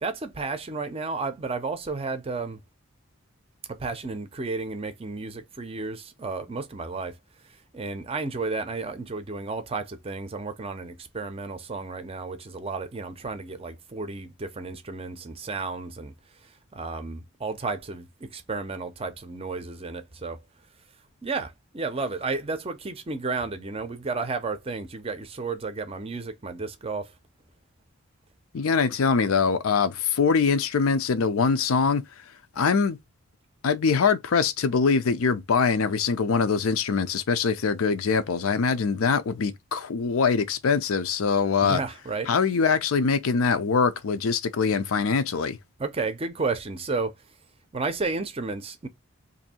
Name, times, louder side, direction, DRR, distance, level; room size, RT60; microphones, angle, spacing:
voice 1, 0.0-2.6 3.7-7.2 7.7-16.1 16.4-20.4 21.2-27.1 41.6-42.3 45.8-47.2 47.7-48.9, right 3 dB, 25° right, 0.5 m, -32 dB
voice 2, 28.5-32.0 32.6-33.0 33.6-41.8 42.3-45.6, left 5 dB, 85° left, 0.5 m, -23 dB
2.6 x 2.6 x 4.1 m
head